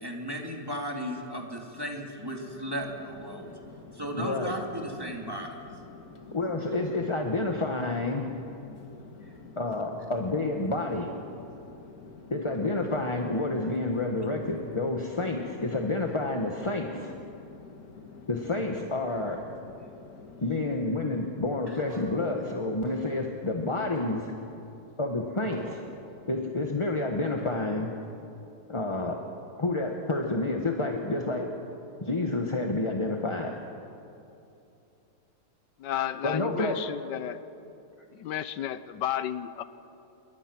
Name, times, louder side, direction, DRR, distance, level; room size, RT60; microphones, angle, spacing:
voice 1, 0.0-3.5 4.0-5.5, equal, 15° right, 1 dB, 2.6 m, -35 dB
Chatter / Fixed-wing aircraft airplane, 2.3-21.2, left 4 dB, 55° left, 2.0 m, -49 dB
voice 2, 4.1-4.5 6.3-8.3 9.6-11.1 12.3-17.1 18.3-19.4 20.4-24.3 25.0-25.8 26.3-27.9 28.7-29.2 29.6-31.5 32.0-33.5 36.2-36.8, left 2 dB, 20° left, 2 dB, 1.1 m, -29 dB
sound 1, 21.9-23.5 23.7-24.2 25.5-25.6, right 1 dB, 90° right, 6.1 m, -42 dB
voice 3, 35.8-37.4 38.2-39.6, left 11 dB, 85° left, 13 dB, 1.4 m, -32 dB
27.0 x 22.5 x 6.2 m, 2.8 s
omnidirectional pair, 1.9 m